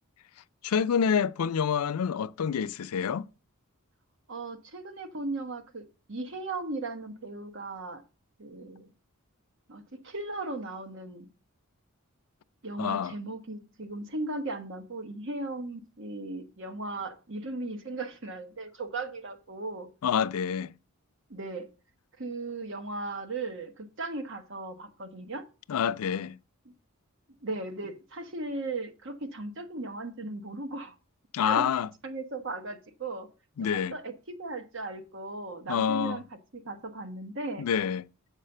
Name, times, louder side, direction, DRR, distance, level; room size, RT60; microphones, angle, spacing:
voice 1, 0.6-3.3 12.8-13.1 20.0-20.7 25.7-26.4 31.3-31.9 33.6-34.0 35.7-36.2 37.6-38.1, left 7 dB, 85° left, 0.4 m, -27 dB
voice 2, 4.3-8.0 8.4-8.9 9.7-11.2 12.6-19.9 21.3-21.7 22.2-25.4 27.4-30.9 31.4-31.6 32.0-33.3 33.7-36.2 36.5-37.7, right 2 dB, 60° right, 1.1 m, -37 dB
7.4 x 4.8 x 6.6 m
head